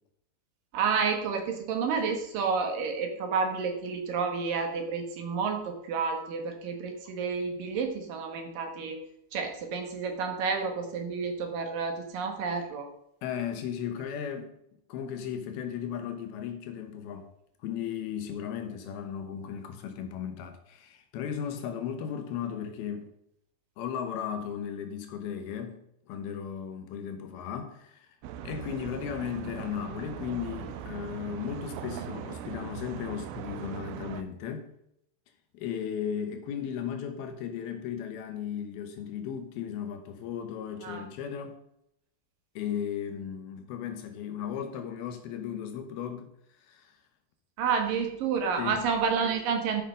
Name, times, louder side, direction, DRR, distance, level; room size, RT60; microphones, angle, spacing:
voice 1, 0.7-9.0 9.3-12.9 40.8-41.0 47.6-49.8, right 5 dB, 65° right, 3.0 m, -30 dB
voice 2, 13.2-14.6 14.9-17.3 17.6-23.1 23.8-28.1 28.4-34.7 35.5-41.6 42.6-46.3 46.6-47.0 48.6-48.9, left 8 dB, 80° left, 2.9 m, -36 dB
sound 1, 28.2-34.2, right 10 dB, 90° right, 2.6 m, -40 dB
12.0 x 5.6 x 5.1 m
omnidirectional pair, 4.4 m